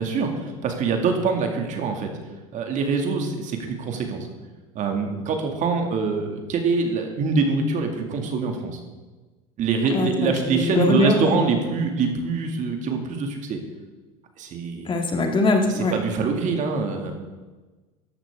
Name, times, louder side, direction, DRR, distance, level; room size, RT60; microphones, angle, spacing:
voice 1, 0.0-2.1 2.5-4.3 4.7-8.8 9.6-13.6 14.4-14.9 15.7-17.1, right 4 dB, 45° right, 4 dB, 2.2 m, -24 dB
voice 2, 9.9-11.3 14.9-15.9, left 2 dB, 30° left, 3 dB, 1.9 m, -22 dB
14.0 x 11.0 x 3.6 m, 1.3 s
hypercardioid pair, 85°, 17 cm